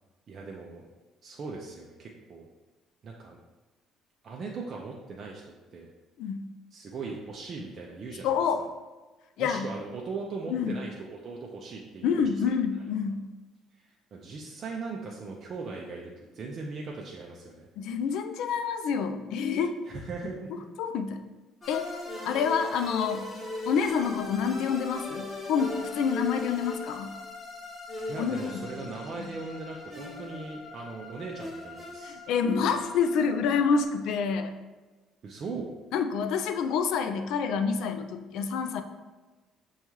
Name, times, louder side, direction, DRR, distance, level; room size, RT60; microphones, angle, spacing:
voice 1, 0.3-0.9 1.2-2.5 3.0-3.4 4.2-5.9 6.7-8.4 9.4-12.5 13.8-17.7 19.9-20.6 28.1-32.2 35.2-35.7, right 4 dB, 45° right, -2 dB, 0.4 m, -39 dB
voice 2, 8.2-8.6 9.4-9.7 10.5-10.8 12.0-13.2 17.8-19.8 20.5-21.2 21.7-21.9 22.2-23.3 23.7-27.1 28.2-28.7 29.1-29.3 32.0-34.5 35.9-38.8, left 6 dB, 75° left, 8 dB, 0.3 m, -28 dB
sound 1, 21.6-33.8, left 2 dB, 25° left, 1.1 m, -39 dB
5.4 x 2.3 x 3.0 m, 1.2 s
cardioid pair, 105°, 0 cm